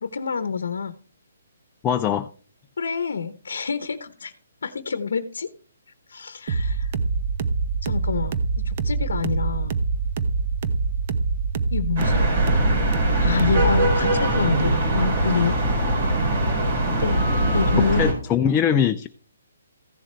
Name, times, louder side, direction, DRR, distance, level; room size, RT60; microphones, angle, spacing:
voice 1, 0.0-1.0 2.8-4.3 4.6-5.5 6.1-6.9 7.8-9.7 11.7-12.2 13.2-15.6 16.7-17.2 17.5-18.1, left 6 dB, 75° left, 11 dB, 0.8 m, -27 dB
voice 2, 1.8-2.3 18.0-19.1, left 8 dB, 15° left, 5 dB, 0.5 m, -21 dB
sound 1, 6.5-13.9, right 4 dB, 40° right, 0.9 m, -25 dB
sound 2, 12.0-18.1, right 1 dB, 55° right, 4.5 m, -21 dB
15.0 x 7.3 x 3.3 m, 0.42 s
hypercardioid pair, 155°, 0 cm